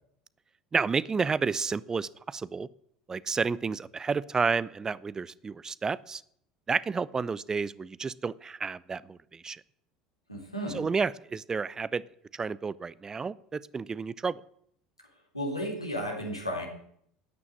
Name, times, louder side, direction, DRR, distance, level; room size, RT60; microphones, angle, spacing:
voice 1, 0.7-2.7 3.1-6.2 6.7-9.6 10.7-12.0 12.3-14.4, right 5 dB, 20° right, 20 dB, 0.6 m, -31 dB
voice 2, 10.3-10.9 15.3-16.7, equal, 90° left, 0 dB, 3.8 m, -33 dB
13.5 x 9.7 x 9.7 m, 0.69 s
figure-of-eight pair, 65°, 3 cm